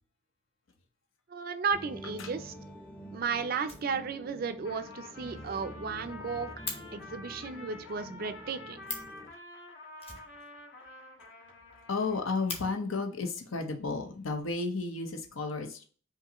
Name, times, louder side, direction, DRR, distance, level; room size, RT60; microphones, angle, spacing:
voice 1, 1.3-2.5 3.1-6.5 6.9-8.8, right 5 dB, 45° right, 0.4 m, -34 dB
sound 1, 1.7-9.3, equal, 10° left, 0.6 m, -48 dB
Fire, 3.2-3.3 3.6-4.4 4.7-4.8 5.1-5.2 5.5-5.6 5.8-6.8 8.5-8.6 8.8-9.2 10.0-10.9 11.2-11.3 11.6-11.7 12.1-12.6 13.6-13.7 14.4-15.0, left 3 dB, 30° left, 0.9 m, -42 dB
Trumpet, 4.6-12.5, left 2 dB, 65° left, 1.4 m, -48 dB
voice 2, 11.9-15.8, left 3 dB, 80° left, 0.8 m, -33 dB
5.3 x 2.6 x 3.0 m
head